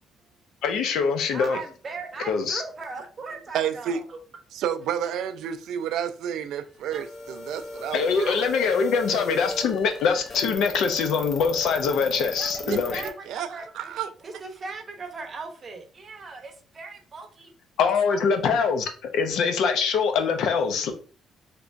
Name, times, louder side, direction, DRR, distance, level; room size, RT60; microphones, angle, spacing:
voice 1, 0.6-1.6 2.3-2.6 7.9-13.0 17.8-20.9, left 5 dB, 75° left, 0.6 m, -23 dB
voice 2, 1.3-4.2 6.9-7.0 7.7-7.8 8.1-8.4 12.4-12.6 12.9-13.9 14.2-17.5, right 4 dB, 35° right, 0.7 m, -38 dB
voice 3, 3.5-4.0 4.5-8.5 12.6-14.1, right 9 dB, 80° right, 0.3 m, -30 dB
sound 1, 6.9-13.1, left 2 dB, 30° left, 0.6 m, -37 dB
3.3 x 2.9 x 2.5 m
cardioid pair, 135°, 0 cm